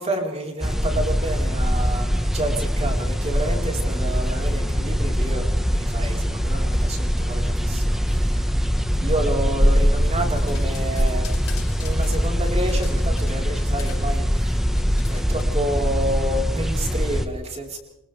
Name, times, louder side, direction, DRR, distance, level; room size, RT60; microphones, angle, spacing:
voice 1, 0.0-8.5 9.0-11.3 11.7-17.8, right 1 dB, 30° right, 0 dB, 4.5 m, -30 dB
sound 1, 0.6-17.3, equal, ahead, 1.4 m, -22 dB
sound 2, 10.2-13.5 13.8-14.1 14.7-15.4, left 7 dB, 70° left, 6.3 m, -42 dB
28.5 x 26.0 x 3.5 m, 0.89 s
head